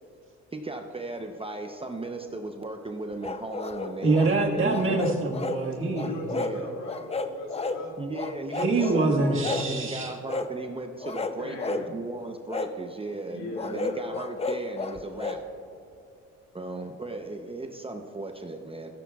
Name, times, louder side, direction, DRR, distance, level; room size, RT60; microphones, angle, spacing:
voice 1, 0.5-4.2 4.5-5.0 6.3-6.7 8.0-15.4 16.5-18.9, right 2 dB, 20° right, 4 dB, 0.7 m, -36 dB
sound 1, 3.2-4.3 4.7-5.6 5.9-6.6 6.9-7.8 8.1-9.0 9.4-9.7 10.3-10.5 11.0-11.9 12.5-12.7 13.6-15.4, left 3 dB, 20° left, 0.6 m, -32 dB
voice 2, 4.0-6.1 8.6-10.1, right 3 dB, 45° right, 0 dB, 1.7 m, -25 dB
voice 3, 5.7-8.0 11.4-11.9 13.3-14.1, left 2 dB, 70° left, -1 dB, 2.6 m, -39 dB
15.0 x 14.5 x 2.4 m, 2.6 s
cardioid pair, 90°, 30 cm